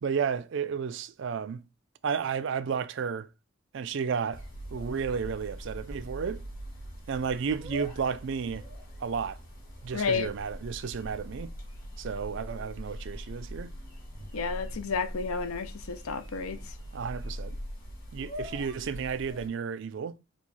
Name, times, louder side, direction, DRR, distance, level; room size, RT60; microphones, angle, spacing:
voice 1, 0.0-1.6 2.0-3.3 3.7-4.4 4.7-6.4 7.1-8.7 9.0-9.4 9.8-11.5 12.0-13.8 16.9-17.6 18.1-20.2, right 6 dB, 60° right, 0.4 m, -32 dB
sound 1, 4.3-19.5, equal, 40° left, 2.2 m, -42 dB
voice 2, 9.9-10.3 14.3-16.6, left 5 dB, 80° left, 0.6 m, -31 dB
4.6 x 2.3 x 4.0 m
head